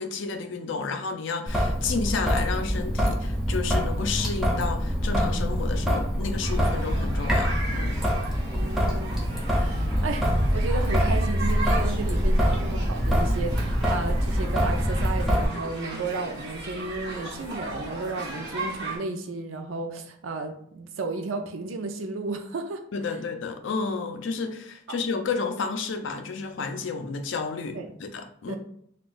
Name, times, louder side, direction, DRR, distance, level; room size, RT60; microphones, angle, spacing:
voice 1, 0.0-8.0 9.7-10.1 22.9-28.6, left 4 dB, 70° left, 7 dB, 0.4 m, -31 dB
Traffic noise roadway noise / Drip / Trickle dribble, 1.5-15.5, equal, ahead, 0.4 m, -25 dB
sound 1, 6.4-19.0, right 2 dB, 60° right, 1.3 m, -37 dB
voice 2, 8.5-22.8 27.7-27.9 28.5-28.6, right 3 dB, 90° right, 5 dB, 0.4 m, -33 dB
3.7 x 2.3 x 2.5 m, 0.67 s
head